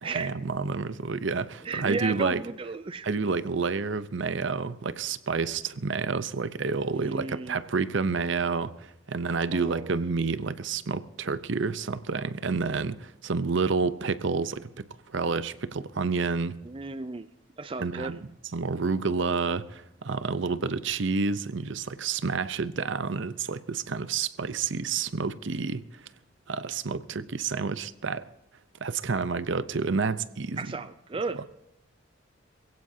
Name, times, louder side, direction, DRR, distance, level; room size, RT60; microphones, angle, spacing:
voice 1, 0.0-2.4 3.0-16.6 17.8-18.2 18.5-26.0 26.5-28.3 28.8-30.8 31.4-31.5, right 4 dB, 60° right, 0.7 m, -29 dB
voice 2, 1.6-3.1 6.9-7.6 9.5-10.0 16.6-17.3 17.6-18.1 30.6-31.4, right 3 dB, 25° right, 0.4 m, -34 dB
22.0 x 16.0 x 2.8 m
head